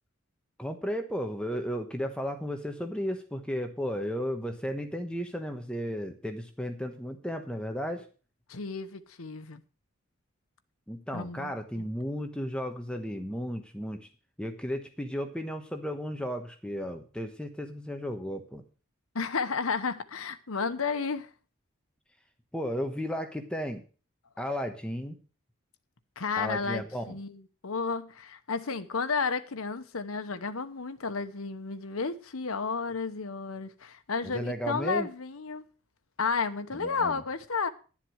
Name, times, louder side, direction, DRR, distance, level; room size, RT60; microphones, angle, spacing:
voice 1, 0.6-8.1 10.9-14.1 14.4-18.6 22.5-23.8 24.4-25.1 26.4-27.2 34.2-35.1 36.7-37.2, equal, 5° left, 1.1 m, -34 dB
voice 2, 8.5-9.6 11.1-11.9 19.1-21.3 26.2-35.6 36.2-37.7, left 5 dB, 80° left, 1.0 m, -32 dB
11.5 x 7.5 x 6.3 m
head